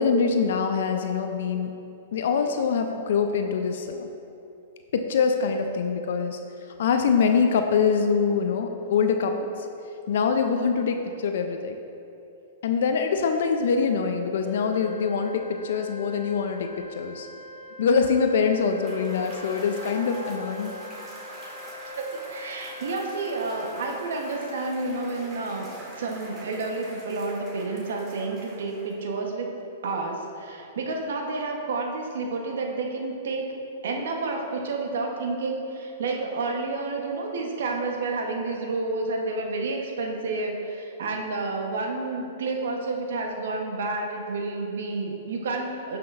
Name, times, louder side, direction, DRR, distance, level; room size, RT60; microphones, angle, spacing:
voice 1, 0.0-1.7 2.1-4.1 4.9-6.4 6.8-9.5 10.1-11.8 12.6-16.7 17.0-17.3 17.8-20.7, left 5 dB, 70° left, 6 dB, 0.5 m, -24 dB
Organ, 14.4-25.5, left 2 dB, 20° left, 0.7 m, -42 dB
Cheering / Applause / Crowd, 18.6-29.1, right 1 dB, 25° right, 1.8 m, -44 dB
voice 2, 22.0-29.6 29.8-33.5 33.8-46.0, right 3 dB, 75° right, 2 dB, 1.0 m, -30 dB
11.5 x 5.9 x 2.5 m, 2.8 s
hypercardioid pair, 125°, 0 cm